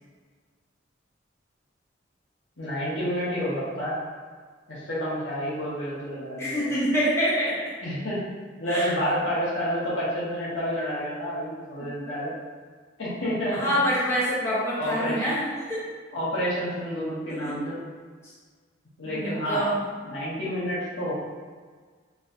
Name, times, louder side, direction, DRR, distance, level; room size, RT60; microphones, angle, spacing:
voice 1, 2.6-4.0 4.7-6.7 7.8-8.2 8.6-12.3 13.0-13.8 14.8-15.3 16.1-17.8 19.0-19.7 20.0-21.1, equal, 70° left, -8 dB, 1.5 m, -29 dB
voice 2, 6.4-7.7 8.7-8.9 13.5-15.8 17.3-17.5 19.1-19.8, equal, 15° left, -9 dB, 0.9 m, -26 dB
4.8 x 3.2 x 2.7 m, 1.6 s
head